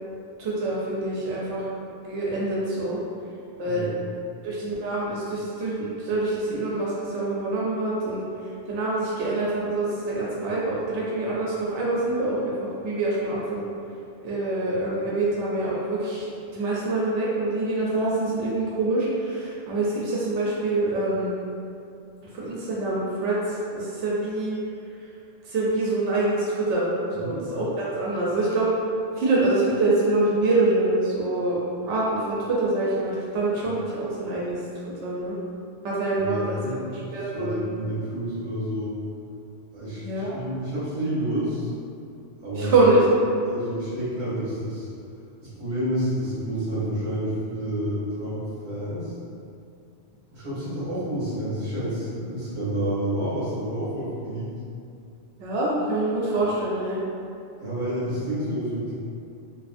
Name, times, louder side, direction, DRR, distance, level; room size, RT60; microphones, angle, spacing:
voice 1, 0.4-1.7 2.0-3.0 3.6-3.9 4.4-13.7 14.2-21.3 22.3-24.6 25.4-26.9 27.2-28.7 29.2-31.6 31.9-35.4 35.8-36.8 37.1-37.6 40.0-40.4 42.5-43.1 55.4-57.0, right 2 dB, 90° right, -6 dB, 0.9 m, -25 dB
voice 2, 3.6-4.0 27.2-27.4 36.2-36.9 37.3-39.0 39.7-41.7 42.4-42.7 43.5-44.9 45.4-49.2 50.3-54.5 57.6-58.9, right 1 dB, 45° right, -11 dB, 1.2 m, -29 dB
2.5 x 2.5 x 2.4 m, 2.5 s
omnidirectional pair, 1.2 m